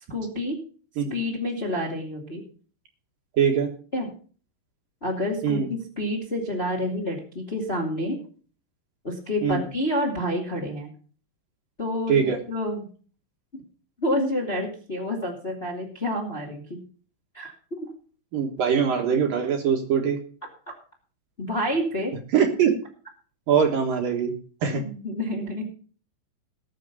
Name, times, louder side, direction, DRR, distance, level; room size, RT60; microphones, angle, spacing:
voice 1, 0.1-0.6 1.1-2.4 3.9-4.1 5.0-8.2 9.0-10.9 11.8-12.8 14.0-16.8 17.3-17.5 21.4-22.1 24.7-25.6, left 1 dB, 20° left, 0 dB, 1.6 m, -28 dB
voice 2, 3.4-3.7 5.4-5.7 9.4-9.6 12.1-12.4 18.3-20.2 22.3-22.7 23.5-24.3 24.6-24.8, right 7 dB, 60° right, 3 dB, 2.6 m, -22 dB
19.5 x 6.7 x 5.3 m, 0.42 s
omnidirectional pair, 5.3 m